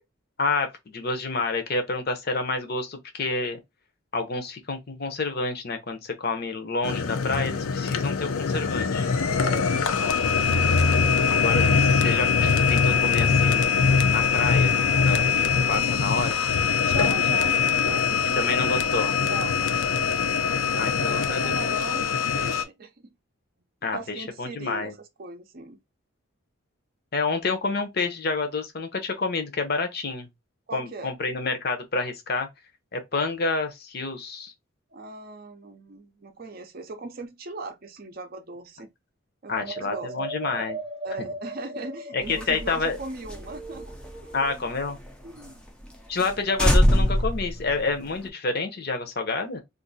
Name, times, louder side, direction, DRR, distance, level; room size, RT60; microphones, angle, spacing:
voice 1, 0.4-3.6 4.1-9.1 11.3-13.8 14.1-16.4 18.3-19.2 20.8-21.4 23.8-24.9 27.1-30.3 30.7-32.5 32.9-34.5 39.5-40.8 42.1-43.0 44.3-45.0 46.1-49.6, left 3 dB, 45° left, 0.7 m, -28 dB
sound 1, 6.8-22.6, left 6 dB, 80° left, 0.5 m, -22 dB
voice 2, 9.3-11.2 16.8-18.7 19.2-20.2 20.6-23.1 23.9-25.8 30.7-31.1 34.9-38.9 39.4-40.1 41.0-44.0 44.2-44.3 45.2-45.6 46.2-46.4, right 2 dB, 45° right, 0.5 m, -39 dB
sound 2, 39.6-44.5, right 2 dB, 25° right, 0.9 m, -38 dB
sound 3, 42.2-45.1 45.4-45.5 45.8-45.9 46.2-46.3 46.6-48.3, equal, 5° left, 0.4 m, -24 dB
2.5 x 2.5 x 3.9 m
head